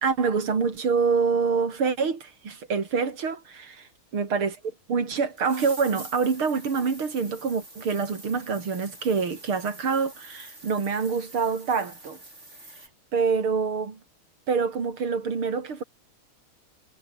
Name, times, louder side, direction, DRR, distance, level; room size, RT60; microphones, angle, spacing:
voice 1, 0.0-4.6 4.9-12.2 13.1-14.0 14.5-15.8, right 5 dB, 85° right, 4.1 m, -26 dB
sound 1, 4.6-4.7 5.3-12.9, right 2 dB, 30° right, 8.2 m, -46 dB
omnidirectional pair, 2.3 m